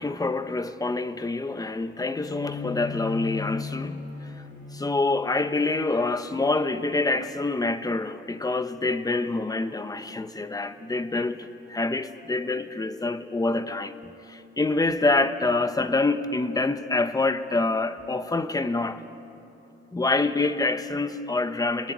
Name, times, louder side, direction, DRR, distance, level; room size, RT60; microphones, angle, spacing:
voice 1, 0.0-4.3 4.7-19.0 19.9-21.9, left 3 dB, 20° left, 1.4 m, -26 dB
Bowed string instrument, 2.2-7.5, left 6 dB, 40° left, 7.5 m, -38 dB
29.5 x 20.5 x 9.7 m
cardioid pair, 90°, 20 cm